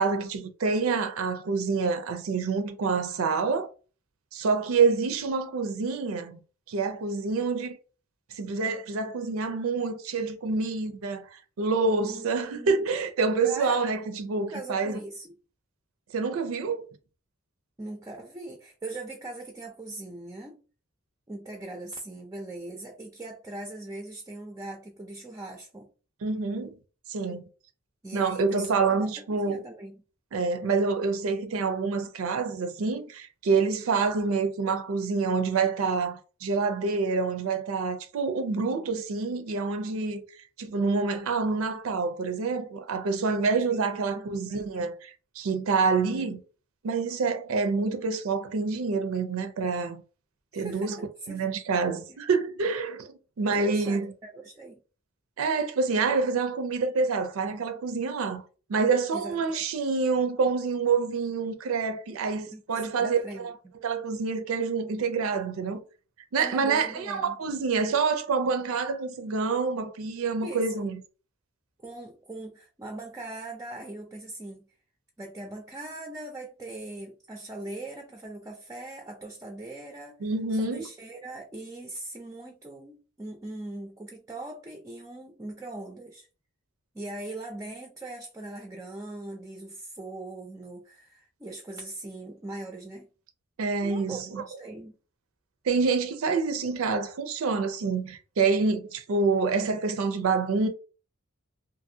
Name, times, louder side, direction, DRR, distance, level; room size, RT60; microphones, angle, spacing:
voice 1, 0.0-3.7 4.3-6.4 6.7-7.8 8.3-15.0 16.1-16.9 26.2-26.7 27.1-27.4 28.1-29.6 30.3-40.2 40.6-46.4 46.8-50.0 50.5-51.0 51.3-54.1 55.4-58.4 58.7-63.2 63.8-65.8 66.3-71.0 80.2-80.8 93.6-94.4 95.7-100.7, right 4 dB, 80° right, 0.4 m, -27 dB
voice 2, 12.0-12.8 13.4-13.8 14.5-15.4 17.8-20.6 21.3-25.9 28.0-30.0 43.7-44.7 50.5-51.5 52.1-52.2 53.5-54.8 59.1-59.4 62.5-63.7 66.4-67.4 70.4-70.9 71.8-74.7 75.2-86.3 86.9-93.1 93.8-95.0, right 2 dB, 15° right, 0.4 m, -40 dB
2.7 x 2.5 x 2.6 m
head